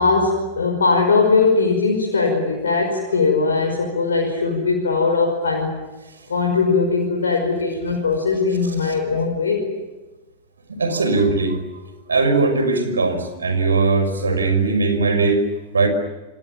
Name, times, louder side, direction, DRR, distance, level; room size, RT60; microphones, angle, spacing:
voice 1, 0.0-5.8 6.3-9.7, left 4 dB, 70° left, 1 dB, 5.7 m, -20 dB
voice 2, 10.8-11.6 12.1-15.9, right 3 dB, 75° right, 8 dB, 5.7 m, -19 dB
29.5 x 26.0 x 7.4 m, 1.1 s
figure-of-eight pair, 90°, 0 cm